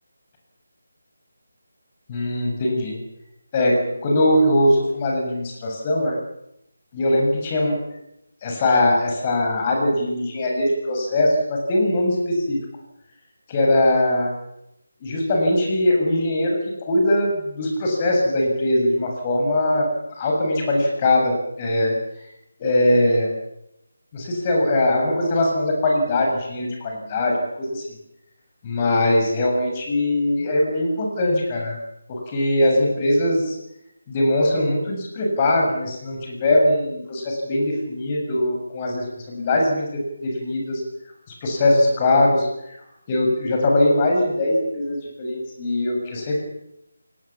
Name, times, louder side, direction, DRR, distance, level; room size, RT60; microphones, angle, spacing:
voice 1, 2.1-3.0 3.5-6.2 6.9-7.8 8.4-12.6 13.5-14.3 15.0-16.6 16.9-19.9 20.2-21.9 22.6-23.3 24.1-27.8 28.6-31.8 32.1-33.5 34.1-40.8 41.4-42.5 43.1-46.4, left 1 dB, 25° left, 0 dB, 7.3 m, -21 dB
27.5 x 19.0 x 7.4 m, 0.83 s
figure-of-eight pair, 155°, 0 cm